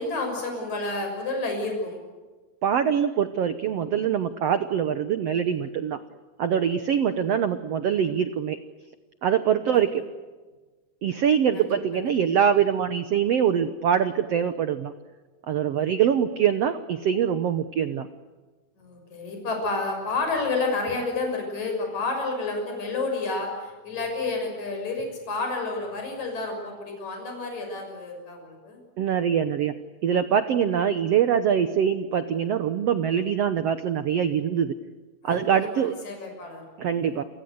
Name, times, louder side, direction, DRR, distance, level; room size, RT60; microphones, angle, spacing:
voice 1, 0.0-2.0 11.5-11.7 15.7-16.0 18.8-28.8 35.2-36.6, left 3 dB, 45° left, 3 dB, 7.5 m, -30 dB
voice 2, 2.6-6.0 6.4-8.6 9.2-10.0 11.0-14.9 15.5-18.1 29.0-29.7 30.0-34.8 35.2-35.9 36.8-37.2, right 8 dB, 85° right, 10 dB, 1.3 m, -23 dB
29.5 x 24.0 x 8.0 m, 1.3 s
omnidirectional pair, 4.4 m